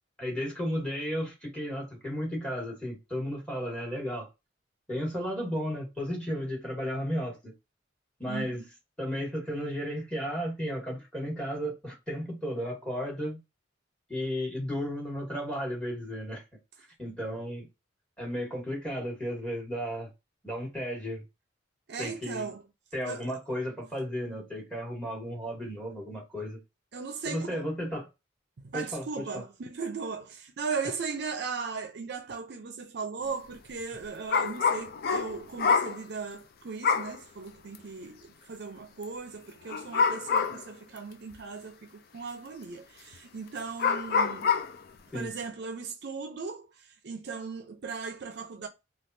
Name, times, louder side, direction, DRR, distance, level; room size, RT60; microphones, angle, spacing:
voice 1, 0.2-4.3 4.9-7.5 8.2-8.6 9.0-13.4 14.1-16.4 17.0-17.6 18.2-20.1 20.4-21.2 22.0-22.5 22.9-26.6 27.2-28.1 28.7-29.4 45.1-45.3, equal, 5° left, 1.4 m, -34 dB
voice 2, 8.3-8.7 21.9-22.7 23.1-23.3 26.9-27.6 28.6-44.5 45.1-48.7, right 5 dB, 60° right, 0.5 m, -37 dB
sound 1, 34.3-36.0 36.8-37.2 37.7-37.8 39.7-40.7 41.3-41.4 43.1-43.2 43.8-44.8, left 5 dB, 50° left, 0.4 m, -26 dB
3.2 x 2.4 x 2.6 m
head